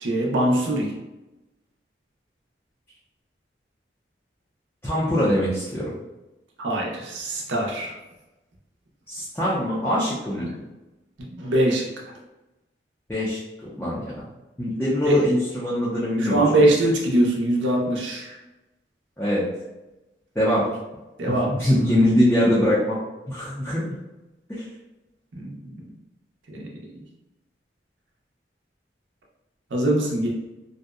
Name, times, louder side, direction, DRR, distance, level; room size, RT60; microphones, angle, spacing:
voice 1, 0.0-0.9 6.6-7.9 11.2-11.8 15.1-15.2 16.2-18.4 21.2-21.5 25.3-25.7 26.5-26.6 29.7-30.3, right 1 dB, 85° right, -1 dB, 0.5 m, -22 dB
voice 2, 4.8-5.9 9.1-10.6 13.1-13.4 13.8-14.2 14.6-16.4 19.2-19.4 20.4-20.7 21.3-23.0 23.3-23.9 24.5-24.6, left 1 dB, 10° left, -9 dB, 0.4 m, -22 dB
2.6 x 2.1 x 2.3 m, 1.0 s
head